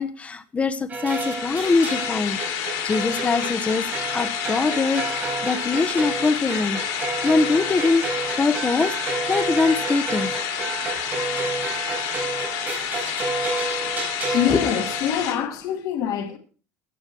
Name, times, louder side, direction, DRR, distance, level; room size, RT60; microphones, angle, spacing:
voice 1, 0.0-2.4 2.8-3.9 4.1-5.0 5.4-8.1 8.4-8.9 9.2-10.4 14.5-14.6, left 4 dB, 20° left, 0.9 m, -23 dB
sound 1, 0.9-15.3, right 4 dB, 25° right, 4.7 m, -30 dB
sound 2, 1.1-15.3, left 9 dB, 90° left, 3.0 m, -29 dB
voice 2, 14.3-16.4, left 10 dB, 60° left, 1.8 m, -25 dB
15.5 x 8.9 x 4.4 m
cardioid pair, 145°, 7 cm